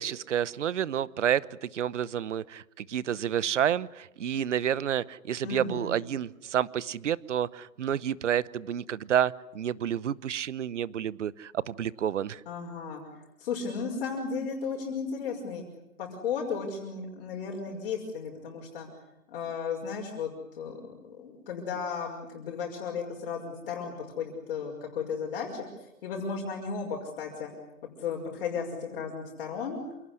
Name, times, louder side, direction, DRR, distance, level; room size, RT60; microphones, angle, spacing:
voice 1, 0.0-12.4, right 9 dB, 55° right, 21 dB, 1.0 m, -29 dB
voice 2, 5.4-6.0 12.5-15.6 16.0-18.9 19.3-27.5 28.0-29.8, left 5 dB, 40° left, 0 dB, 5.5 m, -35 dB
28.0 x 19.0 x 9.9 m, 0.87 s
hypercardioid pair, 165°, 43 cm